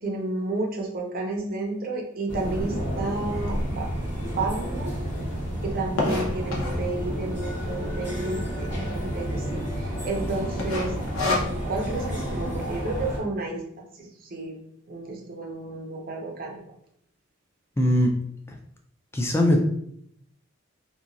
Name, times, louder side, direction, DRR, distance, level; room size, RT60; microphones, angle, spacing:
voice 1, 0.0-3.9 4.4-4.9 5.6-14.6 14.9-16.6, right 2 dB, 45° right, -1 dB, 0.6 m, -32 dB
sound 1, 2.3-13.2, equal, 35° left, 1.0 m, -30 dB
sound 2, 3.5-3.6 4.2-4.3 4.4-4.5 4.8-6.9 7.6-8.0 8.3-8.4 8.6-8.7 9.3-9.6 9.9-10.2 10.6-11.9, left 2 dB, 80° left, 0.7 m, -28 dB
voice 2, 17.8-18.1 19.1-19.6, left 1 dB, 10° left, 1 dB, 0.3 m, -20 dB
2.8 x 2.3 x 2.5 m, 0.70 s
head